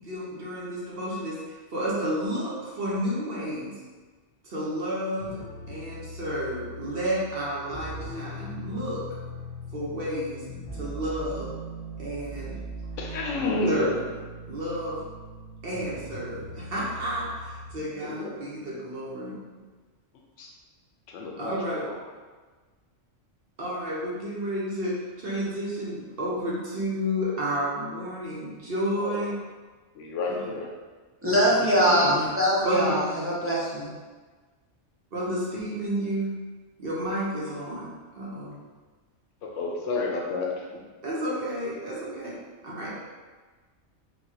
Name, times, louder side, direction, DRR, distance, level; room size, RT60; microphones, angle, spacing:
voice 1, 0.0-3.8 4.4-5.4 5.7-9.2 9.7-10.4 10.7-11.5 12.0-12.6 13.7-14.1 14.5-15.0 15.6-19.4 21.4-21.8 23.6-29.3 30.3-30.4 31.3-31.6 31.8-32.3 32.6-32.9 35.1-36.3 36.8-37.9 38.2-38.6 41.0-42.3 42.6-42.9, equal, 55° right, -6 dB, 1.0 m, -31 dB
sound 1, 5.2-17.7, equal, 35° left, 0.9 m, -40 dB
voice 2, 13.0-13.8 18.0-18.3 20.4-20.5 21.1-22.0 28.9-29.2 29.9-30.7 39.4-40.8, left 3 dB, 85° left, -1 dB, 1.0 m, -30 dB
voice 3, 31.2-33.0 33.4-33.9, equal, 15° right, -9 dB, 0.7 m, -22 dB
4.3 x 2.3 x 2.7 m, 1.3 s
omnidirectional pair, 1.2 m